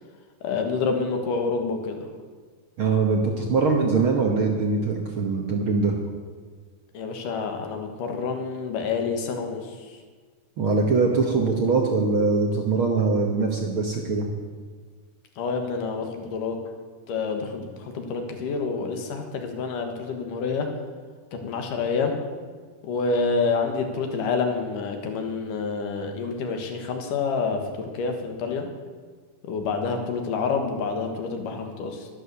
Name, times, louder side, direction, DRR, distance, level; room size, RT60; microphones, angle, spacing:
voice 1, 0.4-2.1 6.9-10.0 15.4-16.6 17.1-20.7 21.3-22.2 22.8-27.6 27.9-28.7 29.4-32.1, left 4 dB, 85° left, 4 dB, 3.1 m, -28 dB
voice 2, 2.8-5.9 10.6-14.3, right 4 dB, 60° right, 1 dB, 1.5 m, -22 dB
11.5 x 11.0 x 6.9 m, 1.5 s
omnidirectional pair, 3.7 m